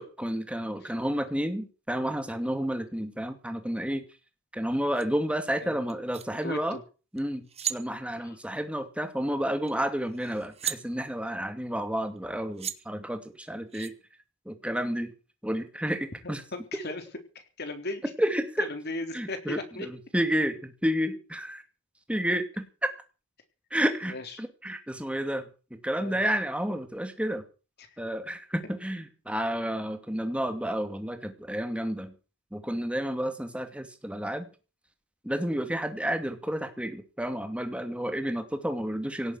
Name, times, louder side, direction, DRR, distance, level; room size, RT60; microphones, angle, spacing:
voice 1, 0.0-4.0 4.5-6.8 7.1-13.9 14.5-15.1 15.4-16.4 18.0-18.7 19.1-21.6 22.1-22.9 23.7-25.5 25.8-27.4 28.0-32.1 32.5-34.5 35.2-39.4, equal, 5° right, 7 dB, 2.6 m, -31 dB
sound 1, 4.9-5.0 5.9-6.2 7.2-7.3 7.5-7.8 9.7-9.8 10.1-10.8 12.2-12.3 12.6-12.8 13.7-13.9, right 9 dB, 30° right, 1.6 m, -34 dB
voice 2, 6.4-6.8 8.2-8.4 16.2-17.0 17.6-18.0 18.7-19.9 24.1-24.2 25.9-26.2 27.8-27.9, left 2 dB, 55° left, 6 dB, 3.9 m, -36 dB
18.0 x 7.7 x 9.6 m, 0.36 s
head